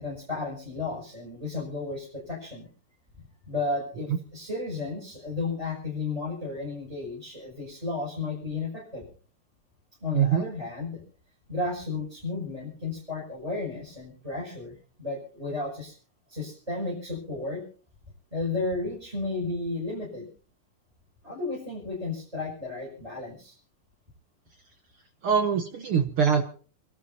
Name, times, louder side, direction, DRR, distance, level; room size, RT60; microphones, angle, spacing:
voice 1, 0.0-2.7 3.5-9.0 10.0-11.0 11.5-14.7 15.0-15.9 16.3-17.6 18.3-20.3 21.2-23.6, left 3 dB, 10° right, -4 dB, 6.7 m, -33 dB
voice 2, 10.1-10.5 25.2-26.4, right 7 dB, 70° right, 7 dB, 1.3 m, -23 dB
28.5 x 12.5 x 2.8 m, 0.42 s
omnidirectional pair, 3.9 m